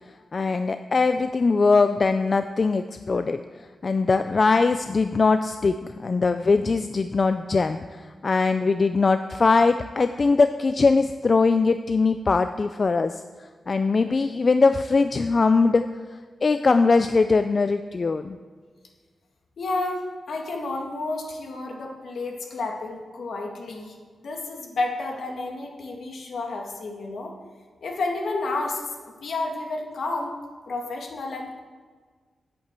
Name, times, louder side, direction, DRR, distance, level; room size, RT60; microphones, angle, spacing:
voice 1, 0.3-3.4 3.8-13.2 13.7-15.9 16.4-18.4, left 4 dB, 40° left, 9 dB, 0.4 m, -21 dB
voice 2, 19.6-20.0 20.3-24.0 24.2-27.3 27.8-30.3 30.7-31.6, left 2 dB, 65° left, 1 dB, 2.0 m, -31 dB
8.7 x 8.6 x 7.5 m, 1.5 s
wide cardioid pair, 130°, 0 cm